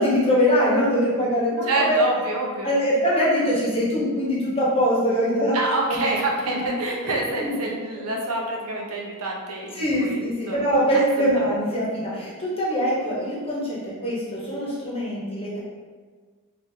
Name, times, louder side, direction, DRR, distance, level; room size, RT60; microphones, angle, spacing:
voice 1, 0.0-2.0 2.6-5.6 5.9-6.0 6.5-6.7 7.4-7.5 9.8-15.6, equal, 25° left, -6 dB, 1.0 m, -23 dB
voice 2, 1.7-2.7 5.5-10.6 11.2-11.3, right 2 dB, 70° right, -1 dB, 0.7 m, -27 dB
4.9 x 2.6 x 2.8 m, 1.5 s
head